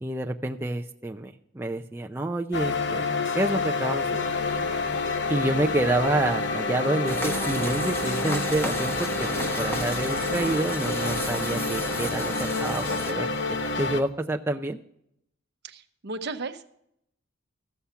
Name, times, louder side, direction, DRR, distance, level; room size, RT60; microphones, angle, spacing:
voice 1, 0.0-3.1 3.3-4.3 5.3-9.1 9.6-13.3 13.8-14.8, right 2 dB, 10° right, 2 dB, 0.5 m, -28 dB
sound 1, 2.5-14.0, left 3 dB, 60° left, 0.9 m, -28 dB
sound 2, 7.1-13.1, equal, 10° left, 1.0 m, -33 dB
voice 2, 15.6-16.6, right 3 dB, 55° right, 9 dB, 0.9 m, -35 dB
14.5 x 7.2 x 5.6 m, 0.76 s
head